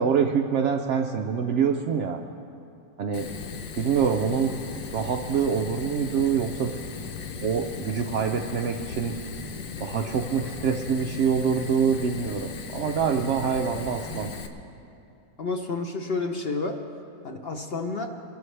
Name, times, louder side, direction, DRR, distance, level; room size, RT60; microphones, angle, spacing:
voice 1, 0.0-2.2 3.0-3.3 3.8-4.6 4.9-6.7 7.4-9.1 9.8-14.3, right 6 dB, 80° right, 3 dB, 0.6 m, -25 dB
Fire, 3.1-14.5, left 5 dB, 85° left, 1.5 m, -37 dB
voice 2, 15.4-16.8 17.2-18.1, left 3 dB, 50° left, 4 dB, 0.7 m, -30 dB
22.0 x 13.0 x 3.3 m, 2.7 s
omnidirectional pair, 1.9 m